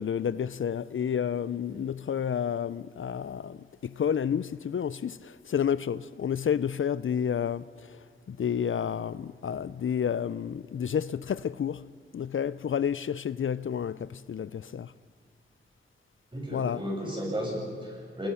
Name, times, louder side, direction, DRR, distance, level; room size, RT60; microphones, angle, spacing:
voice 1, 0.0-8.0 8.3-11.9 12.1-14.9 16.5-16.8, left 8 dB, 70° left, 0.5 m, -30 dB
voice 2, 16.3-18.3, equal, 25° right, 7.9 m, -34 dB
28.5 x 20.5 x 5.7 m
wide cardioid pair, 110°, 21 cm